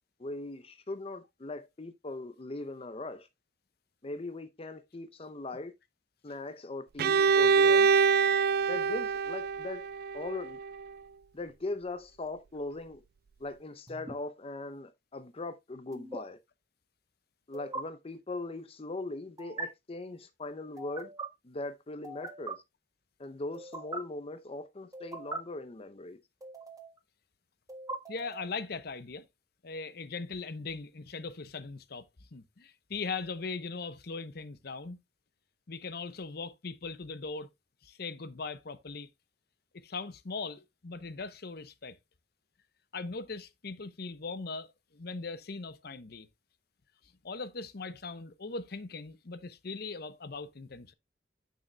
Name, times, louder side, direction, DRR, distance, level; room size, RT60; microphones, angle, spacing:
voice 1, 0.2-3.3 4.0-5.7 6.2-7.9 8.7-9.8 10.1-10.6 11.3-13.0 13.4-16.4 17.5-21.1 21.4-22.6 23.2-26.2, left 2 dB, 35° left, 0.6 m, -40 dB
Bowed string instrument, 7.0-10.8, right 5 dB, 60° right, 0.3 m, -25 dB
sound 1, 13.9-14.2 15.9-16.2 17.5-17.8 19.4-19.7 20.8-21.3 22.0-22.5 23.5-24.0 24.9-25.4 26.4-27.0 27.7-28.6, right 2 dB, 20° right, 1.4 m, -40 dB
voice 2, 28.1-29.2 29.6-32.1 32.3-35.0 35.7-37.5 37.8-39.1 39.7-42.0 42.9-46.3 47.2-50.9, left 4 dB, 60° left, 0.8 m, -40 dB
9.2 x 6.6 x 2.3 m
head